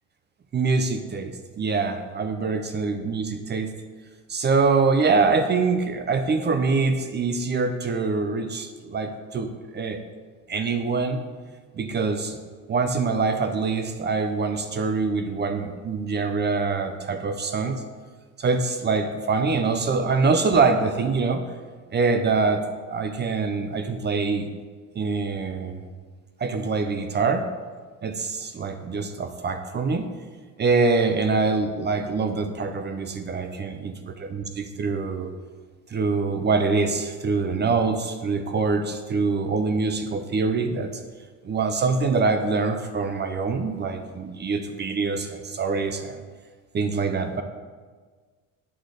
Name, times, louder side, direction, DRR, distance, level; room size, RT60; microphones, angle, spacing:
voice 1, 0.5-3.7 4.3-10.0 10.5-11.2 11.7-12.4 12.7-17.8 18.4-21.4 21.9-22.6 22.9-24.5 24.9-25.8 26.4-27.4 28.0-30.1 30.6-35.3 35.9-40.9 41.4-46.2 46.7-47.4, right 4 dB, 30° right, 7 dB, 0.6 m, -24 dB
8.7 x 3.8 x 6.5 m, 1.5 s
cardioid pair, 125°, 34 cm